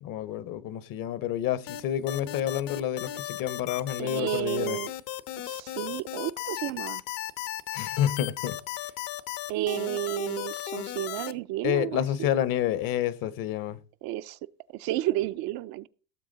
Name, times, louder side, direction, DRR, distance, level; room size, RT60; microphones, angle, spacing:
voice 1, 0.0-4.8 7.7-8.6 11.6-13.8, left 11 dB, 45° left, 0.9 m, -29 dB
sound 1, 1.7-11.3, left 14 dB, 60° left, 1.1 m, -36 dB
voice 2, 4.0-4.9 5.4-7.0 9.5-12.3 14.0-14.4 14.7-15.9, right 16 dB, 50° right, 0.6 m, -32 dB
17.5 x 7.1 x 4.0 m
supercardioid pair, 115°, 49 cm